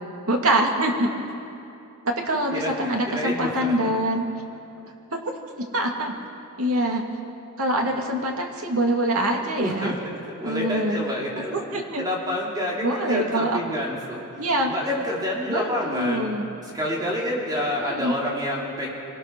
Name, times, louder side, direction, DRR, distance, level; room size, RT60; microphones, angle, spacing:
voice 1, 0.3-1.1 2.0-4.2 5.1-5.3 5.7-6.1 6.6-7.0 7.6-9.9 10.4-11.0 11.5-12.1 12.8-13.8 14.4-14.7 15.5-16.5 17.9-18.1, right 1 dB, 75° right, 1 dB, 2.7 m, -24 dB
voice 2, 2.5-3.7 9.6-10.0 10.3-11.5 12.0-14.2 14.6-16.4 16.6-18.9, left 1 dB, 20° right, -3 dB, 2.8 m, -28 dB
25.5 x 18.5 x 6.3 m, 2.7 s
head